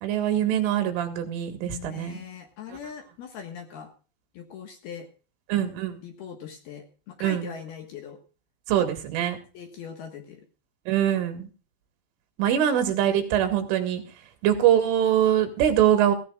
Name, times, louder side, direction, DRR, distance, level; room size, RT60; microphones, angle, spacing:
voice 1, 0.0-2.2 5.5-6.0 7.2-7.5 8.7-9.4 10.9-11.5 12.4-14.0 14.4-16.2, right 10 dB, 75° right, 6 dB, 4.2 m, -23 dB
voice 2, 1.6-3.9 4.3-5.1 6.0-8.2 9.5-10.4, left 7 dB, 65° left, 5 dB, 2.9 m, -41 dB
17.5 x 16.0 x 2.4 m, 0.36 s
omnidirectional pair, 5.8 m